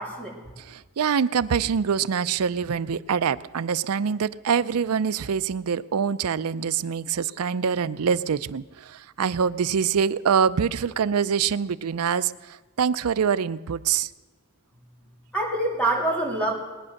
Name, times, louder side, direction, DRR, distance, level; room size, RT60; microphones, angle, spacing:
voice 1, 0.0-0.4 15.3-16.5, right 2 dB, 5° left, -2 dB, 3.1 m, -25 dB
voice 2, 0.6-14.1, right 7 dB, 75° right, 15 dB, 0.5 m, -25 dB
20.0 x 9.7 x 6.5 m, 1.3 s
head